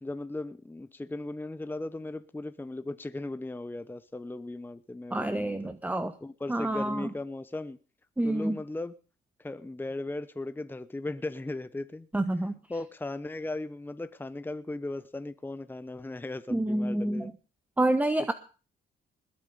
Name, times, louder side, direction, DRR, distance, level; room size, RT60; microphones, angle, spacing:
voice 1, 0.0-5.7 6.2-7.8 8.2-8.9 9.4-12.1 12.7-17.3, left 2 dB, 10° left, 0.9 m, -37 dB
voice 2, 5.1-6.1 6.5-7.1 8.2-8.6 12.1-12.5 16.5-17.3 17.8-18.3, right 1 dB, 10° right, 1.1 m, -28 dB
20.5 x 8.6 x 5.5 m
cardioid pair, 90°, 20 cm